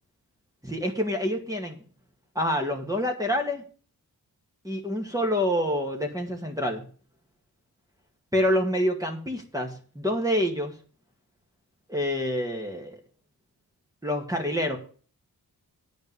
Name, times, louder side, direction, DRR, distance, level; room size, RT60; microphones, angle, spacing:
voice 1, 0.6-1.8 2.4-3.6 4.6-6.8 8.3-10.7 11.9-13.0 14.0-14.8, equal, 10° right, 1 dB, 2.1 m, -27 dB
9.3 x 5.3 x 8.1 m, 0.41 s
cardioid pair, 60°, 39 cm